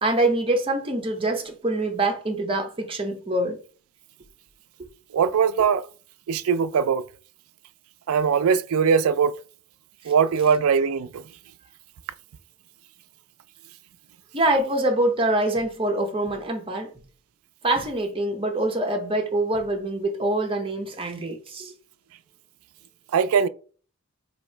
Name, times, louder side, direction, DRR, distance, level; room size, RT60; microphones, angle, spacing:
voice 1, 0.0-3.6 14.3-16.9 17.6-21.7, right 1 dB, 25° right, 0.7 m, -25 dB
voice 2, 5.1-5.9 6.3-7.0 8.1-9.4 10.0-11.2 23.1-23.5, right 6 dB, 85° right, 0.4 m, -21 dB
2.9 x 2.8 x 4.4 m
head